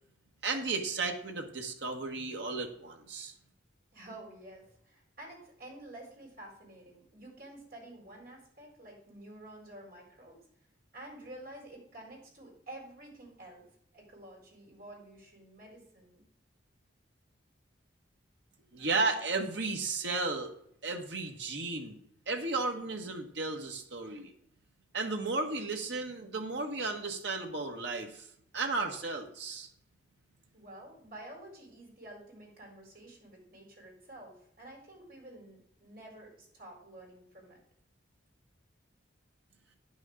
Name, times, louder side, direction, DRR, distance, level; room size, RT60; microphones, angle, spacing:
voice 1, 0.4-3.3 18.7-20.5 20.8-22.0 22.3-24.3 24.9-28.3 28.5-29.7, right 3 dB, 65° right, 3 dB, 1.4 m, -34 dB
voice 2, 3.9-10.4 10.9-13.6 13.9-16.3 30.5-37.6, right 1 dB, 50° right, -1 dB, 4.3 m, -50 dB
10.0 x 6.4 x 4.9 m, 0.70 s
head